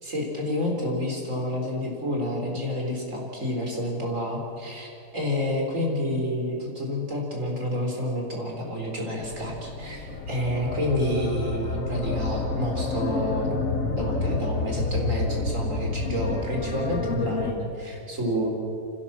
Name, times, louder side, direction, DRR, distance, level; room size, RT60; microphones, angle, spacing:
voice 1, 0.0-13.5 13.9-18.5, left 1 dB, 50° right, 0 dB, 4.4 m, -29 dB
sound 1, 9.2-17.5, left 3 dB, 55° left, 1.7 m, -29 dB
25.0 x 16.5 x 7.5 m, 2.6 s
omnidirectional pair, 1.7 m